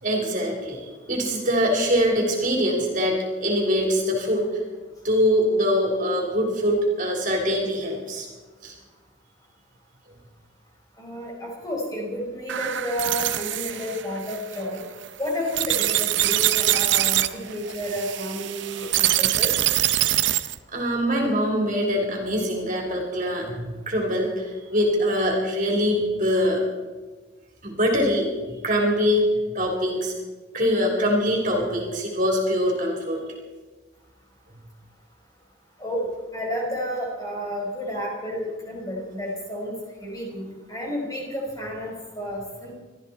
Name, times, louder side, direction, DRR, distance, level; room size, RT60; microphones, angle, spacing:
voice 1, 0.0-4.6 5.0-8.3 8.6-8.8 20.7-26.6 27.6-29.3 29.5-30.1 30.5-33.2, equal, 40° right, 0 dB, 3.6 m, -23 dB
voice 2, 11.0-14.8 15.2-19.5 35.8-39.7 40.0-42.7, equal, 20° left, -2 dB, 5.0 m, -31 dB
sound 1, 12.5-20.6, right 13 dB, 65° right, 0.7 m, -24 dB
23.5 x 14.0 x 4.3 m, 1.3 s
head